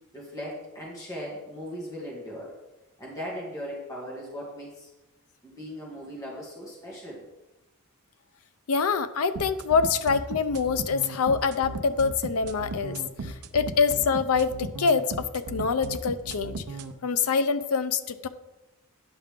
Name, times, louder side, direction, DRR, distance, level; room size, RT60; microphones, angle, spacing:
voice 1, 0.1-2.5 3.0-4.9 5.4-7.2, equal, 15° left, -5 dB, 2.0 m, -38 dB
voice 2, 8.7-16.6 17.0-18.3, left 5 dB, 75° left, 12 dB, 0.5 m, -25 dB
sound 1, 9.4-16.9, right 3 dB, 90° right, 0.6 m, -36 dB
9.7 x 5.7 x 3.6 m, 1.0 s
head